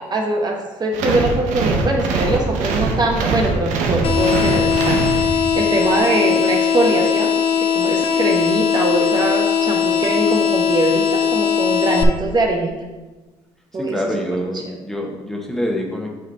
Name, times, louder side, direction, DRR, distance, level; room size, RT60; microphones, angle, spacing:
voice 1, 0.0-7.3 7.6-12.7 13.7-14.0 14.7-14.8, right 2 dB, 35° right, 1 dB, 0.9 m, -22 dB
sound 1, 0.9-5.7, right 3 dB, 85° right, 0.8 m, -22 dB
sound 2, 4.0-12.0, left 7 dB, 50° left, 0.7 m, -19 dB
voice 2, 13.7-16.1, equal, 5° left, 0 dB, 1.2 m, -25 dB
7.9 x 3.3 x 4.0 m, 1.2 s
supercardioid pair, 80°, 12 cm